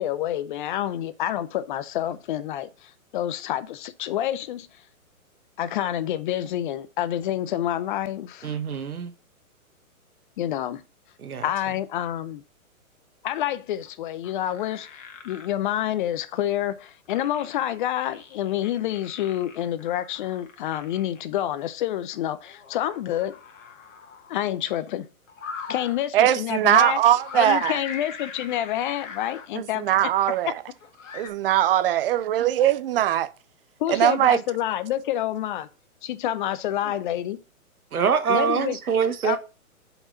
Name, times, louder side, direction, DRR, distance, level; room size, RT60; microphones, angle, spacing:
voice 1, 0.0-4.7 5.6-8.5 10.4-10.8 11.4-12.4 13.2-23.4 24.3-25.1 25.7-27.0 27.3-29.9 33.8-35.7 36.0-37.4 38.3-38.8 39.2-39.4, left 12 dB, 35° left, 0.7 m, -28 dB
voice 2, 8.4-9.1 11.2-11.5 37.9-39.4, right 7 dB, 90° right, 1.3 m, -24 dB
sound 1, 13.8-13.9 14.2-15.5 16.6-21.4 22.3-24.4 25.3-26.0 27.1-29.5 30.8-31.3, left 5 dB, 60° left, 1.9 m, -40 dB
voice 3, 26.1-27.8 29.5-30.5 31.1-33.3 33.9-34.4, right 12 dB, 40° right, 0.6 m, -21 dB
5.4 x 4.7 x 5.8 m
hypercardioid pair, 140°, 42 cm